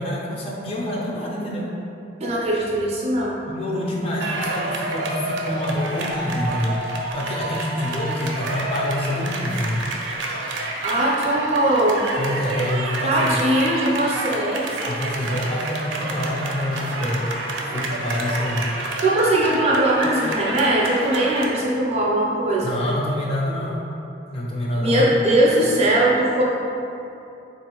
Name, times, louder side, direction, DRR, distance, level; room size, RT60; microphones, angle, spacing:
voice 1, 0.0-1.7 3.5-6.8 7.1-9.8 12.2-13.4 14.9-17.3 17.5-18.7 20.0-20.2 22.6-23.8 24.3-25.1, left 1 dB, 30° left, -4 dB, 0.4 m, -26 dB
voice 2, 2.2-3.4 10.8-12.0 13.0-14.7 19.0-22.8 24.8-26.4, right 1 dB, 35° right, -4 dB, 0.4 m, -20 dB
sound 1, 4.2-21.5, right 2 dB, 90° right, 0.4 m, -29 dB
3.9 x 2.5 x 2.8 m, 2.8 s
head